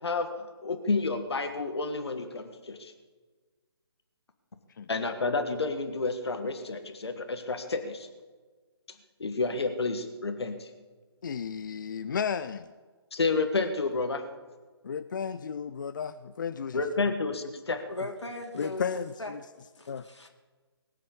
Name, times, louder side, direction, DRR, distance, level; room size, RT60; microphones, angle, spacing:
voice 1, 0.0-2.9 4.9-8.1 9.2-10.7 13.1-14.2 16.7-17.8, left 3 dB, 65° left, 1.6 m, -30 dB
voice 2, 11.2-12.7 14.8-16.8 18.5-19.4 19.9-20.1, left 6 dB, 45° left, 0.5 m, -33 dB
voice 3, 17.9-19.3 19.7-20.3, left 2 dB, 85° left, 2.9 m, -39 dB
21.0 x 7.5 x 8.5 m
figure-of-eight pair, 150°, 14 cm